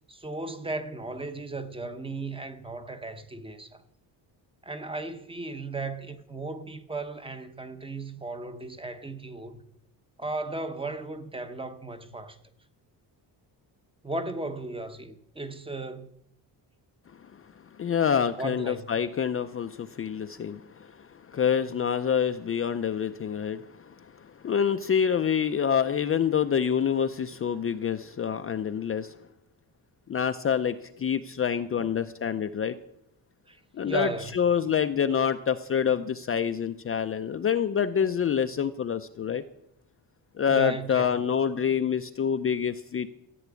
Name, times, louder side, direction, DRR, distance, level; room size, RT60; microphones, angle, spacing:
voice 1, 0.1-3.8 4.6-9.6 10.2-12.4 14.0-16.1 18.4-18.9 31.7-31.9 33.5-34.3 40.5-41.3, right 2 dB, 15° right, 0.9 m, -36 dB
voice 2, 17.8-20.6 21.3-23.6 24.4-29.1 30.1-32.7 33.8-39.4 40.4-43.1, left 7 dB, 35° left, 0.5 m, -26 dB
14.0 x 9.5 x 8.2 m
wide cardioid pair, 180°, 41 cm